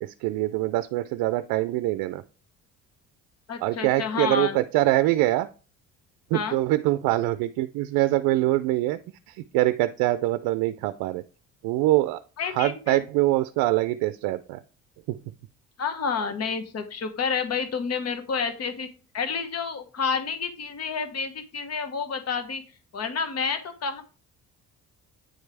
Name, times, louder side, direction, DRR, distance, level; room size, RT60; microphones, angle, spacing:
voice 1, 0.0-2.2 3.6-5.5 6.3-9.0 9.3-11.2 11.6-12.2 12.5-14.6 15.1-15.2, right 16 dB, 85° right, 12 dB, 0.5 m, -24 dB
voice 2, 3.5-4.6 6.3-6.6 12.4-13.0 15.8-18.9 19.1-22.6 22.9-24.0, left 5 dB, 45° left, 8 dB, 1.2 m, -29 dB
9.1 x 3.3 x 4.6 m, 0.36 s
supercardioid pair, 75°, 34 cm